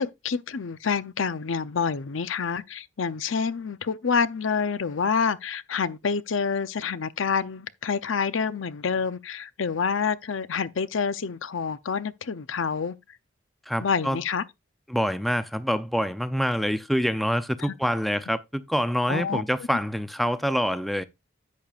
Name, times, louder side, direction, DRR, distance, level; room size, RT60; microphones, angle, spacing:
voice 1, 0.0-12.9 13.8-14.4 17.6-17.7 19.1-19.4, left 5 dB, 80° left, 0.6 m, -27 dB
voice 2, 13.7-14.2 14.9-21.0, equal, ahead, 0.5 m, -26 dB
10.5 x 8.5 x 2.4 m
head